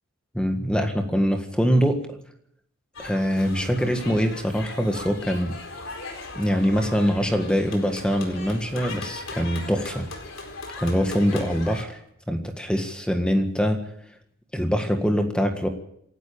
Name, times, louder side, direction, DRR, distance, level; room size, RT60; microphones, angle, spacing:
voice 1, 0.3-2.0 3.0-5.5 6.4-10.1 10.8-12.0 12.3-13.9 14.5-15.7, equal, 5° left, 5 dB, 1.7 m, -23 dB
sound 1, 2.9-11.8, left 3 dB, 65° left, 4.3 m, -38 dB
27.5 x 12.0 x 8.8 m, 0.73 s
head